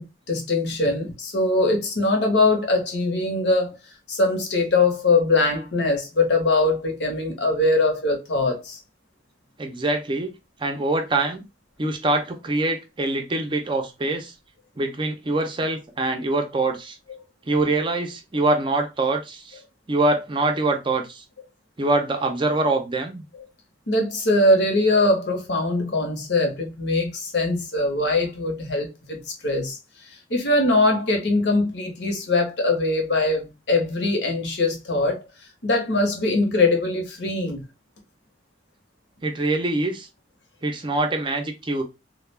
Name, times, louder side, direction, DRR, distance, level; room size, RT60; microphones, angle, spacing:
voice 1, 0.0-3.8 4.1-8.8 23.9-29.8 30.3-35.2 35.6-37.6, left 2 dB, 65° left, 0.8 m, -22 dB
voice 2, 9.6-10.3 10.6-11.4 11.8-14.3 14.8-17.0 17.5-19.6 19.9-21.2 21.8-23.2 39.2-40.1 40.6-41.8, right 2 dB, 25° right, 0.5 m, -24 dB
2.3 x 2.1 x 3.2 m
head